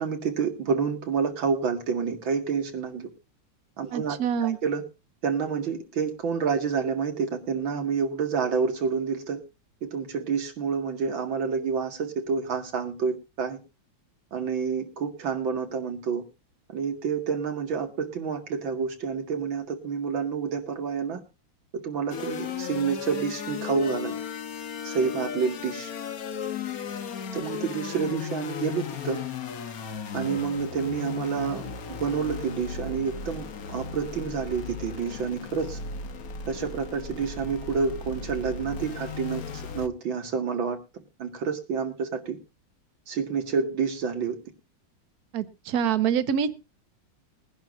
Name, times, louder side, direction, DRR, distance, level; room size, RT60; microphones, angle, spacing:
voice 1, 0.0-3.1 3.8-4.8 5.2-9.4 9.8-13.6 14.3-16.2 16.7-21.2 21.7-24.1 24.8-25.9 27.3-29.2 30.1-35.8 36.5-40.8 41.2-42.4 43.1-44.4, right 6 dB, 90° right, 4 dB, 2.7 m, -28 dB
voice 2, 3.9-4.6 45.3-46.5, right 8 dB, 55° right, 11 dB, 1.4 m, -25 dB
sound 1, 22.1-39.9, left 6 dB, 55° left, 1.4 m, -36 dB
22.0 x 10.5 x 2.5 m, 0.28 s
omnidirectional pair, 2.1 m